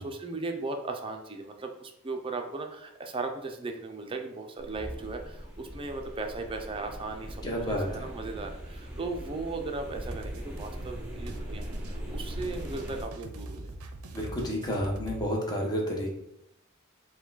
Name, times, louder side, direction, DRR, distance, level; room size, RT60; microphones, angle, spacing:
voice 1, 0.0-13.7, right 3 dB, 25° right, 4 dB, 0.4 m, -37 dB
sound 1, 4.6-13.0, equal, 5° right, 0.8 m, -40 dB
voice 2, 7.4-8.0 14.1-16.1, equal, 20° left, -1 dB, 0.9 m, -30 dB
sound 2, 10.1-15.3, right 2 dB, 75° right, 0.5 m, -42 dB
4.6 x 2.2 x 3.9 m, 0.80 s
head